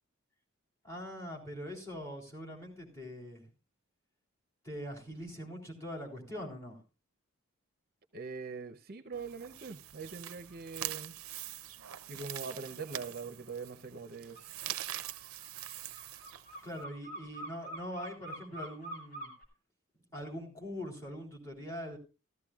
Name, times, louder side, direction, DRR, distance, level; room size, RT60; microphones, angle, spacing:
voice 1, 0.8-3.4 4.6-6.8 16.6-19.3 20.1-22.0, equal, 15° left, 3.6 m, -42 dB
voice 2, 8.1-11.1 12.1-14.4, right 4 dB, 45° right, 0.7 m, -42 dB
sound 1, 9.1-16.8, right 13 dB, 80° right, 0.5 m, -44 dB
sound 2, 14.4-14.5 14.7-19.5, right 1 dB, 45° left, 3.4 m, -45 dB
14.5 x 14.0 x 2.4 m
head